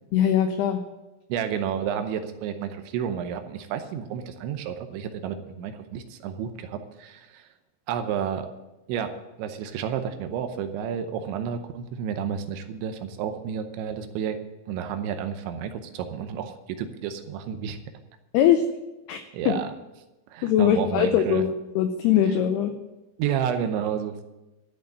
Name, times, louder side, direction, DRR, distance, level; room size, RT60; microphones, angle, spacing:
voice 1, 0.1-0.8 18.3-18.6 19.1-19.6 20.4-21.5 21.8-22.7, left 10 dB, 90° left, 7 dB, 2.3 m, -21 dB
voice 2, 1.3-7.5 7.9-8.5 8.9-9.1 9.4-14.4 14.7-17.8 19.3-19.7 20.3-21.4 23.2-24.2, right 8 dB, 80° right, 8 dB, 3.0 m, -31 dB
13.5 x 6.5 x 8.6 m, 1.0 s
omnidirectional pair, 5.5 m